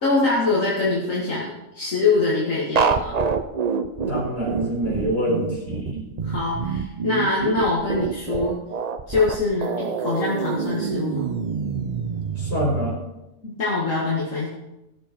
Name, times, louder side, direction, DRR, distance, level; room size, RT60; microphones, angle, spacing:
voice 1, 0.0-3.2 6.2-8.6 9.1-11.3 13.4-14.5, left 3 dB, 65° left, -6 dB, 2.4 m, -24 dB
sound 1, 2.8-13.0, right 5 dB, 45° right, 0.5 m, -26 dB
voice 2, 4.1-6.1 12.4-13.0, right 1 dB, 45° left, -4 dB, 4.5 m, -25 dB
17.0 x 7.4 x 4.4 m, 0.98 s
omnidirectional pair, 1.4 m